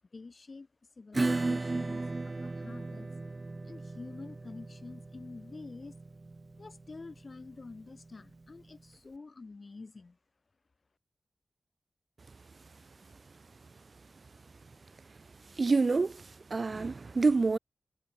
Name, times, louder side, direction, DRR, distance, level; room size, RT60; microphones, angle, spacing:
voice 1, 0.1-0.7 1.0-3.1 3.6-5.9 6.6-10.2, left 3 dB, 50° left, 4.0 m, -47 dB
Acoustic guitar / Strum, 1.1-8.4, right 3 dB, 40° right, 2.6 m, -36 dB
voice 2, 15.6-17.6, right 4 dB, 55° right, 1.4 m, -27 dB
wide cardioid pair, 80°, 0 cm